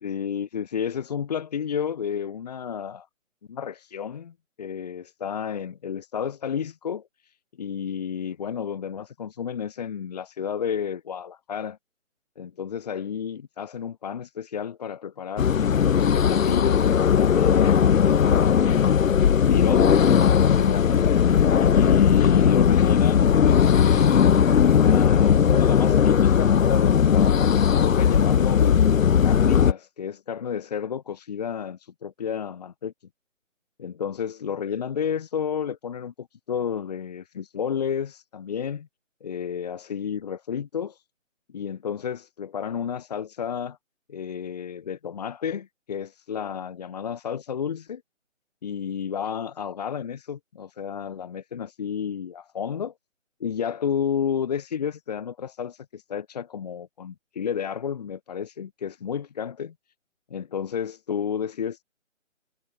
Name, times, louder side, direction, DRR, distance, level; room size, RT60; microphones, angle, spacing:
voice 1, 0.0-3.1 3.5-7.1 7.6-11.8 12.4-15.5 16.0-18.6 19.4-21.0 21.6-27.5 27.8-28.8 29.2-32.9 33.8-38.9 39.2-41.0 41.5-43.8 44.1-48.0 48.6-52.9 53.4-59.7 60.3-61.8, left 7 dB, 30° left, 2.2 m, -31 dB
sound 1, 15.4-29.7, left 8 dB, 90° left, 0.6 m, -18 dB
figure-of-eight pair, 160°, 39 cm